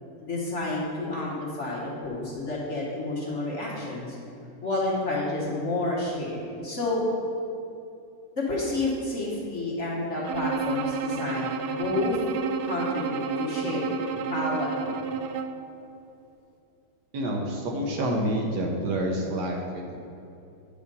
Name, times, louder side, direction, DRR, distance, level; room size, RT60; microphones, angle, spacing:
voice 1, 0.2-4.2 4.6-7.0 8.4-12.2 12.6-15.0, left 2 dB, 40° left, -4 dB, 1.4 m, -30 dB
Bowed string instrument, 10.2-15.7, right 5 dB, 80° right, 0.8 m, -30 dB
voice 2, 17.1-20.0, right 1 dB, 65° right, 1 dB, 1.4 m, -28 dB
9.3 x 5.1 x 5.3 m, 2.7 s
omnidirectional pair, 2.1 m